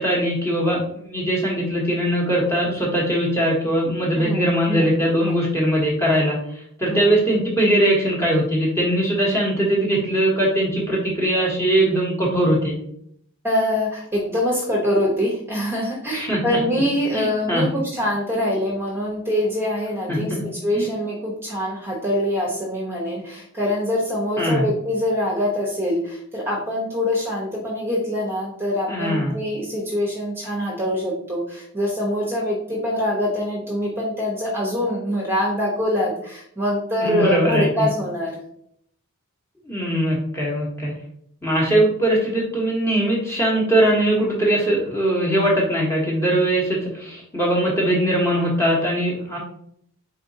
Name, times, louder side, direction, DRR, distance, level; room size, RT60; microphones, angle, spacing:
voice 1, 0.0-6.4 6.8-12.7 16.3-16.6 17.1-17.7 20.1-20.4 20.7-20.9 24.4-24.6 28.9-29.3 37.0-37.9 39.7-40.9 41.4-49.4, right 1 dB, 10° left, -4 dB, 1.1 m, -21 dB
voice 2, 4.1-4.9 5.2-5.5 6.9-7.2 13.4-38.3 48.0-48.2, left 1 dB, 10° right, -4 dB, 0.9 m, -24 dB
4.1 x 3.9 x 2.7 m, 0.67 s
head